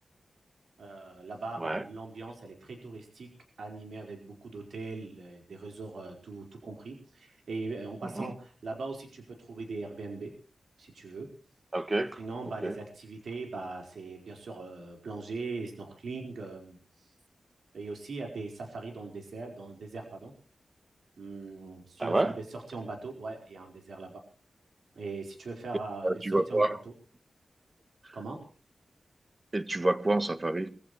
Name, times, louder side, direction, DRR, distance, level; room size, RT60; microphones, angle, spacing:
voice 1, 0.8-3.3 3.6-10.3 10.8-11.3 12.2-16.8 17.7-20.3 21.2-24.2 24.9-26.9 28.1-28.4, right 3 dB, 80° right, 4.8 m, -40 dB
voice 2, 11.7-12.2 12.6-12.7 22.0-22.3 26.0-26.8 29.5-30.8, right 2 dB, 25° right, 1.5 m, -28 dB
24.0 x 16.0 x 3.2 m
wide cardioid pair, 80°, 0 cm